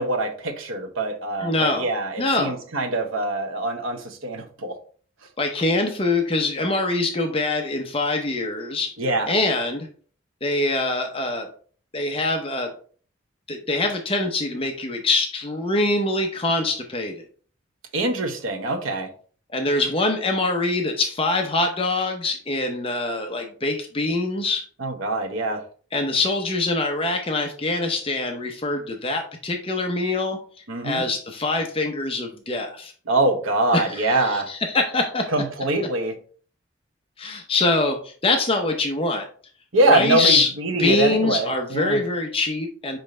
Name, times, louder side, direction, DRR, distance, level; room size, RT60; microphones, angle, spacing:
voice 1, 0.0-4.8 9.0-9.3 17.9-19.1 24.8-25.6 30.7-31.0 33.1-34.5 35.3-36.2 39.7-42.0, right 2 dB, 80° right, 6 dB, 1.0 m, -24 dB
voice 2, 1.4-1.9 2.2-2.6 5.4-8.9 9.3-9.9 10.4-11.5 11.9-12.7 13.5-17.2 19.5-24.6 25.9-30.4 30.8-32.9 33.7-35.3 37.2-39.3 39.9-40.5 40.8-43.0, left 2 dB, 25° left, 4 dB, 0.7 m, -24 dB
5.6 x 5.3 x 3.2 m, 0.44 s
head